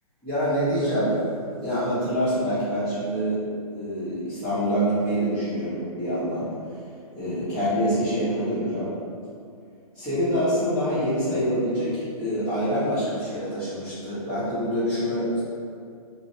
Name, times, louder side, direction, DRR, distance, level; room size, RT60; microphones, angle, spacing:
voice 1, 0.2-1.2 1.6-3.4 3.7-6.5 6.7-6.8 7.1-8.9 9.9-15.4, equal, 5° left, -21 dB, 0.9 m, -26 dB
2.4 x 2.1 x 2.7 m, 2.4 s
hypercardioid pair, 135°, 19 cm